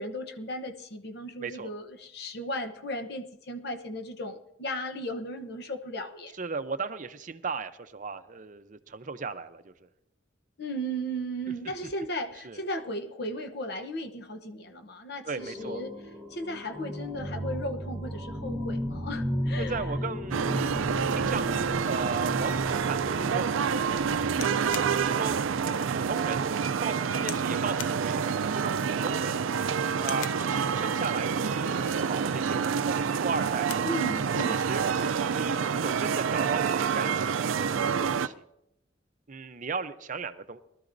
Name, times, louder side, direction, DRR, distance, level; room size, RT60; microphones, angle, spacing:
voice 1, 0.0-6.3 10.6-15.9 16.3-19.9 33.8-34.6, equal, 55° left, 6 dB, 0.9 m, -36 dB
voice 2, 6.4-9.7 12.4-12.6 15.2-15.8 19.6-23.4 23.9-24.2 24.9-25.4 25.9-26.4 26.8-29.4 30.0-33.7 34.5-34.8 35.3-38.4 39.3-40.6, right 4 dB, 40° right, 10 dB, 0.6 m, -36 dB
sound 1, 15.4-26.7, equal, 5° right, 1.3 m, -35 dB
sound 2, 20.3-38.3, right 6 dB, 85° right, 0.4 m, -28 dB
sound 3, 24.3-25.0 25.5-25.6 26.1-26.3 27.2-27.5 27.8-28.0 29.0-29.4 30.0-30.5 31.7-32.1 33.2-33.9 34.3-34.4 34.7-35.2 36.0-36.3, left 9 dB, 90° left, 0.6 m, -41 dB
22.0 x 12.5 x 2.6 m, 0.79 s
head